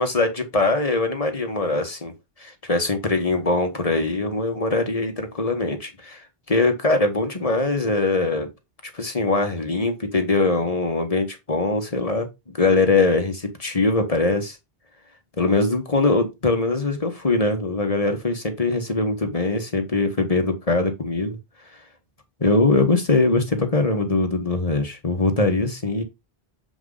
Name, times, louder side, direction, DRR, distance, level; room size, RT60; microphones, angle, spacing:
voice 1, 0.0-2.1 2.4-8.5 8.9-12.3 12.5-14.6 15.4-21.4 21.7-21.8 22.4-26.0, left 3 dB, 35° left, 1.5 m, -22 dB
7.9 x 4.7 x 3.9 m
omnidirectional pair, 1.0 m